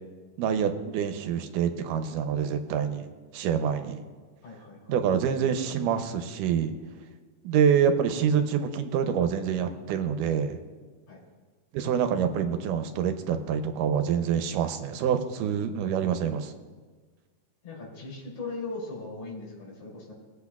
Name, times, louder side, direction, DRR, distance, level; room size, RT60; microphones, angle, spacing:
voice 1, 0.4-3.1 3.3-4.0 4.9-6.7 7.4-10.6 11.7-16.5, right 8 dB, 80° right, 8 dB, 2.2 m, -26 dB
voice 2, 4.4-5.0 11.1-11.2 17.6-20.1, left 3 dB, 60° left, -4 dB, 4.3 m, -39 dB
20.5 x 8.1 x 2.3 m, 1.4 s
omnidirectional pair, 3.8 m